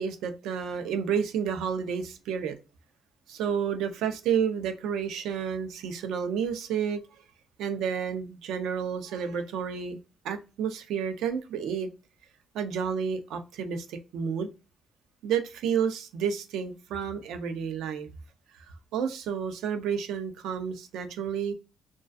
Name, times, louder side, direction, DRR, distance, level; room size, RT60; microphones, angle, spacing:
voice 1, 0.0-2.5 3.3-7.0 7.6-10.0 10.2-11.9 12.5-14.5 15.2-18.1 18.9-21.5, right 7 dB, 85° right, 7 dB, 0.5 m, -30 dB
2.3 x 2.2 x 2.4 m, 0.30 s
cardioid pair, 90°, 0 cm